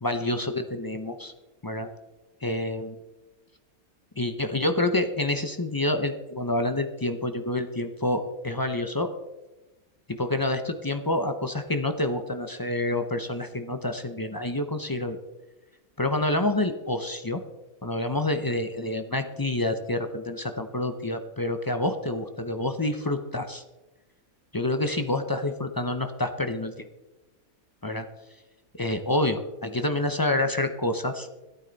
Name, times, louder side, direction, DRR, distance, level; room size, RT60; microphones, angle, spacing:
voice 1, 0.0-1.3 1.6-1.9 2.4-3.0 4.2-9.1 10.1-15.2 16.0-17.4 17.8-23.6 24.5-26.9 27.8-28.1 28.7-31.3, left 2 dB, 25° left, 7 dB, 0.4 m, -28 dB
14.0 x 12.0 x 4.0 m, 1.1 s
omnidirectional pair, 1.5 m